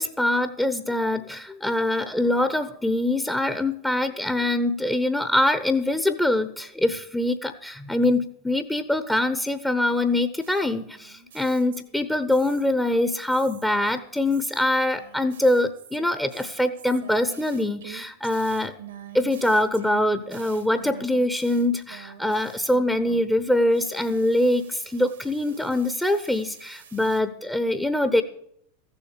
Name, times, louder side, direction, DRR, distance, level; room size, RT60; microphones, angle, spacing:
voice 1, 0.0-18.7 19.1-28.2, left 1 dB, 5° left, 10 dB, 0.9 m, -24 dB
sound 1, 10.4-12.0 12.3-12.9 13.3-23.4 23.7-27.2, right 8 dB, 70° right, 1.5 m, -47 dB
15.0 x 7.2 x 8.2 m, 0.70 s
figure-of-eight pair, 85°, 0 cm